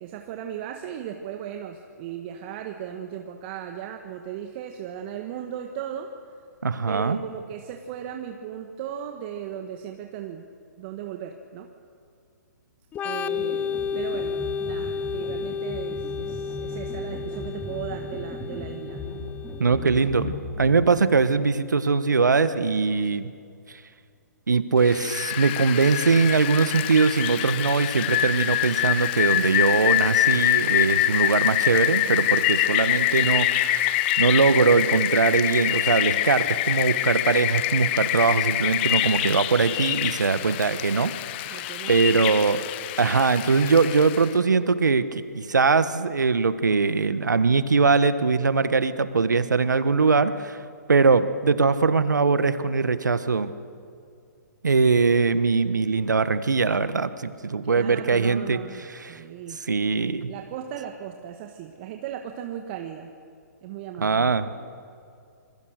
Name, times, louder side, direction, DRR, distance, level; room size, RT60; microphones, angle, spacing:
voice 1, 0.0-6.1 6.9-10.5 10.8-11.7 13.0-14.4 14.6-19.0 19.7-20.0 41.4-42.4 57.6-59.6 60.3-63.1 63.6-64.5, right 9 dB, 40° right, 4 dB, 1.5 m, -37 dB
voice 2, 6.6-7.2 19.6-23.3 24.5-41.1 41.5-42.6 43.0-53.5 54.6-58.6 58.9-59.2 59.7-60.3 64.0-64.5, right 4 dB, 85° right, 12 dB, 1.4 m, -21 dB
Organ, 12.9-20.4, left 6 dB, 15° left, 0.5 m, -32 dB
sound 1, 13.3-21.1, left 2 dB, ahead, 3.9 m, -37 dB
Rain, 24.9-44.3, left 14 dB, 35° left, 1.0 m, -25 dB
27.0 x 21.5 x 6.6 m, 2.4 s
hypercardioid pair, 135°, 10 cm